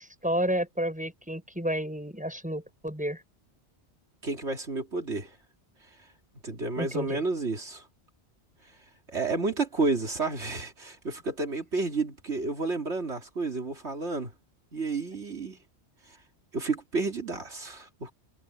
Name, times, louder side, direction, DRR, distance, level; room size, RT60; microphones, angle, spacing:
voice 1, 0.0-3.2 6.8-7.2, equal, 5° right, 7.0 m, -31 dB
voice 2, 4.2-5.4 6.4-7.8 9.1-14.3 14.7-15.6 16.5-18.1, right 3 dB, 80° right, 3.2 m, -31 dB
omnidirectional pair, 1.1 m